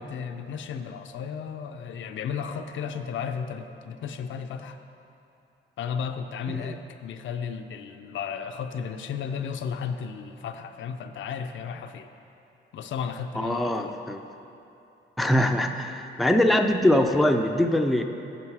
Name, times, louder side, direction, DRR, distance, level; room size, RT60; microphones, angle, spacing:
voice 1, 0.0-4.8 5.8-12.1 12.7-14.0, left 6 dB, 75° left, 7 dB, 0.5 m, -34 dB
voice 2, 13.4-14.2 15.2-18.0, left 1 dB, ahead, 4 dB, 0.4 m, -23 dB
8.9 x 6.2 x 4.7 m, 2.9 s
cardioid pair, 110°, 20 cm